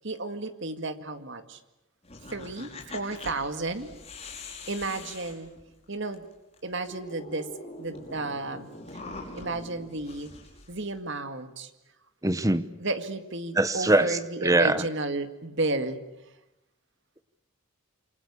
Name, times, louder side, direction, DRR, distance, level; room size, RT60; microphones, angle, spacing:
voice 1, 0.0-1.6 2.3-3.9 4.7-5.5 5.9-6.3 6.6-7.5 7.8-8.7 9.3-10.3 10.7-11.7 12.8-16.0, right 2 dB, 55° right, 9 dB, 2.1 m, -32 dB
sound 1, 2.0-6.1 6.5-6.6 6.8-11.0, left 2 dB, 30° left, 5.4 m, -43 dB
voice 2, 12.2-12.6 13.6-14.8, right 2 dB, 15° right, 13 dB, 1.0 m, -23 dB
28.0 x 24.5 x 8.4 m, 0.91 s
head